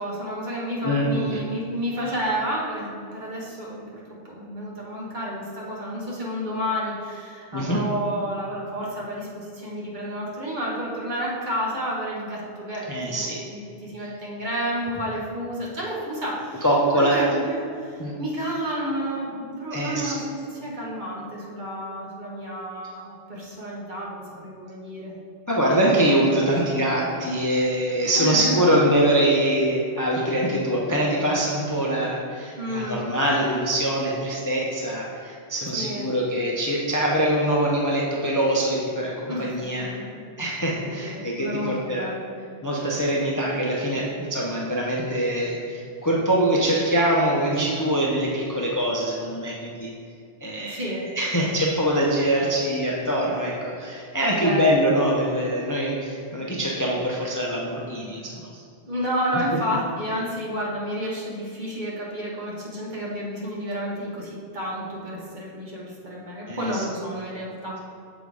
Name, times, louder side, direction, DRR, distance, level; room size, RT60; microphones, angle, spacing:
voice 1, 0.0-16.6 16.9-25.1 26.3-26.7 28.1-28.7 32.6-33.1 35.7-36.1 39.3-40.2 40.9-42.3 50.7-51.1 51.4-51.5 54.3-54.8 58.8-67.8, equal, 45° right, -5 dB, 1.3 m, -31 dB
voice 2, 0.8-1.4 7.5-7.8 12.9-13.4 16.6-17.2 18.0-18.1 19.7-20.1 25.5-39.9 40.4-42.1 42.6-49.9 50.4-58.6 66.5-66.8, right 1 dB, 20° left, -4 dB, 0.5 m, -23 dB
6.8 x 3.9 x 4.7 m, 2.4 s
omnidirectional pair, 1.1 m